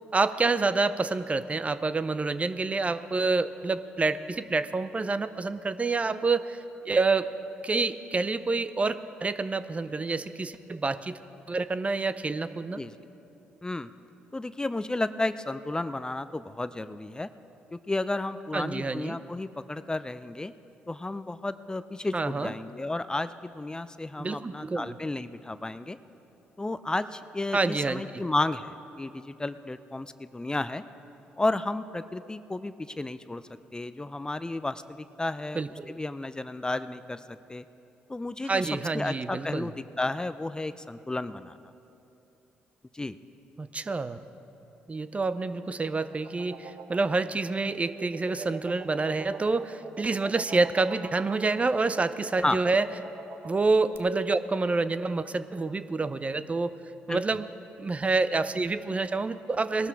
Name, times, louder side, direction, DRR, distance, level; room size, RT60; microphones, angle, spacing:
voice 1, 0.1-7.3 7.6-11.2 11.5-12.8 18.5-19.2 22.1-22.5 24.2-24.9 27.5-28.2 35.5-35.9 38.4-39.7 43.6-44.2 44.9-52.9 53.4-56.7 57.1-57.5 57.8-59.9, right 3 dB, 30° right, 13 dB, 0.6 m, -28 dB
voice 2, 14.3-17.3 17.7-20.5 20.9-26.0 26.6-30.8 31.4-33.4 33.7-37.6 38.1-41.6 42.9-43.2 52.4-52.6 57.1-57.2, left 2 dB, 15° left, 13 dB, 0.5 m, -32 dB
sound 1, 45.5-54.0, right 5 dB, 55° right, 0.8 m, -44 dB
19.5 x 12.5 x 4.7 m, 2.9 s
supercardioid pair, 55°, 4 cm